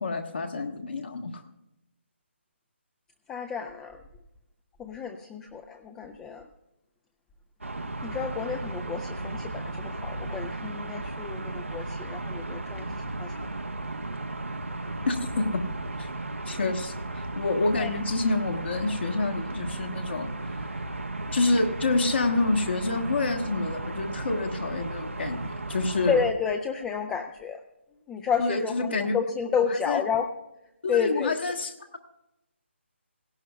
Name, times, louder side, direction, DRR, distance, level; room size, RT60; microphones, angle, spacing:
voice 1, 0.0-1.4 15.0-15.6 16.0-16.1 16.5-20.7 21.3-26.2 28.4-29.1 29.7-30.0 30.8-32.0, left 3 dB, 60° left, 3 dB, 1.4 m, -28 dB
voice 2, 3.3-4.0 4.8-6.5 8.0-13.5 17.8-17.9 26.1-27.6 28.1-30.3 30.9-31.4, left 6 dB, 10° left, 5 dB, 0.4 m, -30 dB
sound 1, 7.6-26.3, right 2 dB, 85° right, 1.1 m, -35 dB
17.0 x 17.0 x 2.3 m, 0.90 s
figure-of-eight pair, 150°, 7 cm